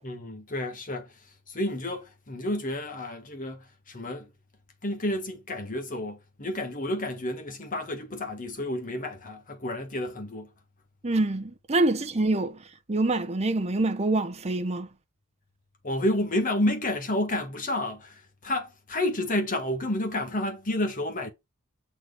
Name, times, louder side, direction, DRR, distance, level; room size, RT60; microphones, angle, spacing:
voice 1, 0.0-1.1 1.5-4.3 4.8-10.5 15.8-21.3, left 1 dB, 40° left, 1.5 m, -30 dB
voice 2, 11.0-12.6 12.9-14.9, right 2 dB, 30° right, 0.8 m, -25 dB
6.1 x 4.1 x 4.9 m
head